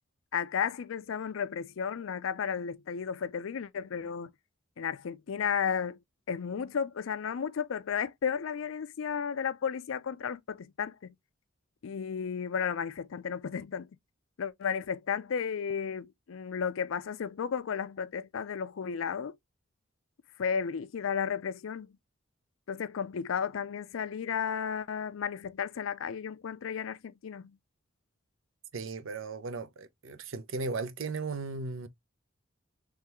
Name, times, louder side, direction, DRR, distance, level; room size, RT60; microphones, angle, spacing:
voice 1, 0.3-4.3 4.8-6.0 6.3-11.1 11.8-13.9 14.4-19.3 20.4-21.9 22.7-27.6, left 7 dB, 90° left, 0.4 m, -33 dB
voice 2, 28.7-31.9, right 3 dB, 85° right, 0.7 m, -36 dB
3.6 x 3.2 x 2.9 m
head